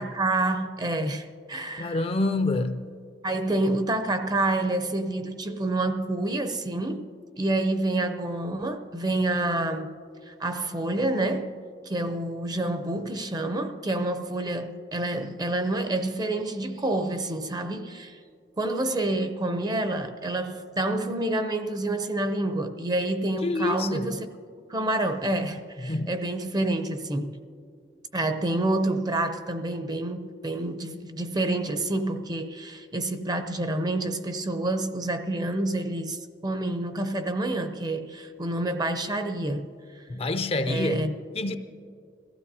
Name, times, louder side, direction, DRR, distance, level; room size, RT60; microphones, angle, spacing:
voice 1, 0.0-2.0 3.2-7.1 7.4-10.0 10.3-11.6 11.8-18.2 18.6-24.3 24.7-27.4 28.1-39.7 39.9-40.0 40.6-41.1, right 2 dB, 20° right, 0.6 m, -28 dB
voice 2, 1.8-2.9 23.4-24.1 25.8-26.1 40.1-41.5, left 2 dB, 35° left, 0.4 m, -27 dB
22.0 x 15.5 x 2.7 m
head